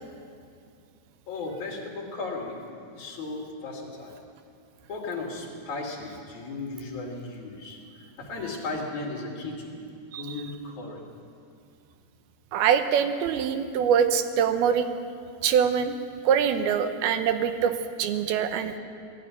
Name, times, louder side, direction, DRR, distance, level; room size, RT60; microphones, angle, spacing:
voice 1, 1.3-2.6 2.9-4.1 4.9-9.8 10.1-11.0, left 3 dB, 55° left, -1 dB, 4.0 m, -35 dB
voice 2, 12.5-14.9 15.4-16.0 16.2-18.8, right 8 dB, 90° right, 9 dB, 2.9 m, -24 dB
19.5 x 14.5 x 10.0 m, 2.4 s
omnidirectional pair, 4.4 m